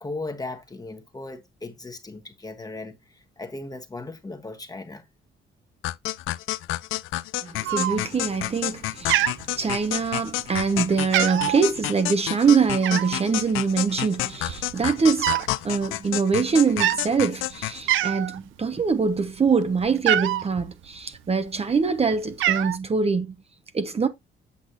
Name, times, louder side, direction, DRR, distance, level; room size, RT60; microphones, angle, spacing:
voice 1, 0.0-5.0, left 2 dB, 20° left, 1.3 m, -37 dB
sound 1, 5.8-17.8, left 17 dB, 90° left, 0.4 m, -30 dB
voice 2, 7.4-15.4 15.6-23.3 23.7-24.1, right 5 dB, 30° right, 0.9 m, -24 dB
Cat, 7.6-8.3 8.6-8.8 9.1-10.1 10.6-10.7 11.0-11.6 12.8-13.2 14.0-14.1 14.4-15.5 15.8-16.0 16.7-17.0 17.5-17.6 17.9-18.4 18.8-20.5 21.3-21.9 22.1-22.8, right 13 dB, 80° right, 0.6 m, -25 dB
8.3 x 6.0 x 2.8 m
cardioid pair, 90°, 20 cm